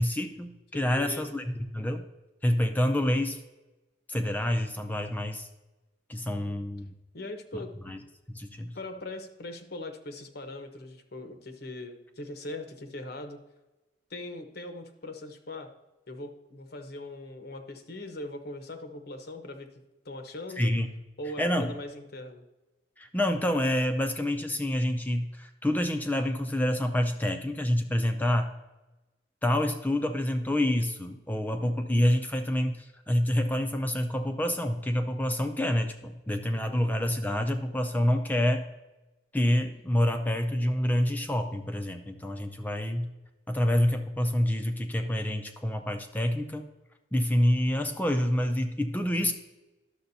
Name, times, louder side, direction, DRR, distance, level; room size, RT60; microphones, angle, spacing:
voice 1, 0.0-1.4 1.7-2.0 2.4-3.4 4.1-5.5 6.1-6.9 7.5-8.0 8.3-8.8 20.6-20.9 21.4-21.7 23.0-28.5 29.4-38.6 39.3-43.1 43.5-46.7 47.1-49.3, left 1 dB, 10° left, 6 dB, 0.4 m, -27 dB
voice 2, 0.7-1.3 6.3-6.6 7.1-7.7 8.7-13.4 14.1-15.7 16.1-19.7 20.0-20.7 21.2-22.4 36.5-36.8, left 2 dB, 60° left, 7 dB, 0.9 m, -40 dB
11.5 x 6.8 x 2.7 m, 1.1 s
head